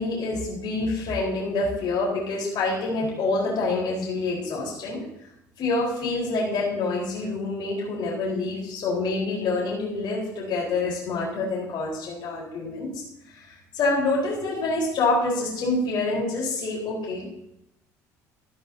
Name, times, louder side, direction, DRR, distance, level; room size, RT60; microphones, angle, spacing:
voice 1, 0.0-5.0 5.6-13.0 13.3-17.3, left 3 dB, 55° left, -5 dB, 4.6 m, -27 dB
13.5 x 13.0 x 2.9 m, 0.81 s
hypercardioid pair, 65°, 9 cm